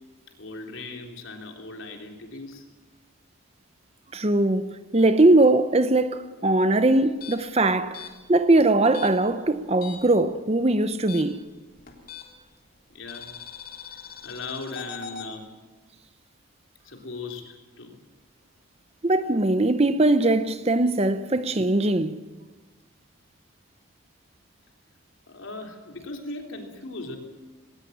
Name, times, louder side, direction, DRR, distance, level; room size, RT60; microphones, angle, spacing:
voice 1, 0.4-2.7 12.9-13.3 13.9-15.5 16.8-18.0 25.3-27.2, left 3 dB, 65° left, 3.5 m, -38 dB
voice 2, 4.1-11.4 19.0-22.2, right 2 dB, 30° right, 0.7 m, -21 dB
sound 1, 7.1-10.2 10.5-12.5 13.1-15.3, left 6 dB, 40° left, 3.5 m, -42 dB
19.5 x 19.0 x 8.6 m
head